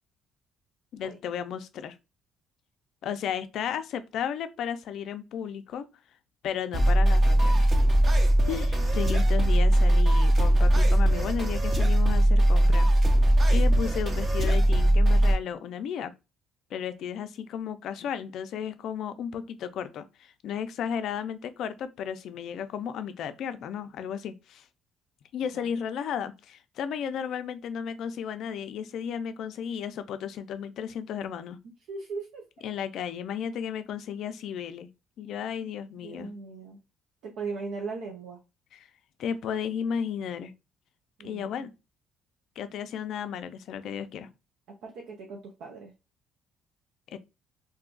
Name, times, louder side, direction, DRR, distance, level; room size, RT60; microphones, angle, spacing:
voice 1, 0.9-1.9 3.0-5.9 6.4-7.7 8.5-12.9 13.5-16.1 16.7-24.6 25.3-31.6 32.6-34.9 35.2-36.3 38.7-38.9 39.2-40.5 41.2-41.7 42.6-44.3 47.1-47.2, left 8 dB, 60° left, 0.4 m, -34 dB
sound 1, 6.7-15.3, right 1 dB, 25° right, 0.6 m, -20 dB
voice 2, 31.9-32.7 36.0-36.8 37.2-38.4 41.2-41.7 44.8-45.9, right 4 dB, 75° right, 0.6 m, -38 dB
2.6 x 2.4 x 3.8 m
cardioid pair, 140°, 0 cm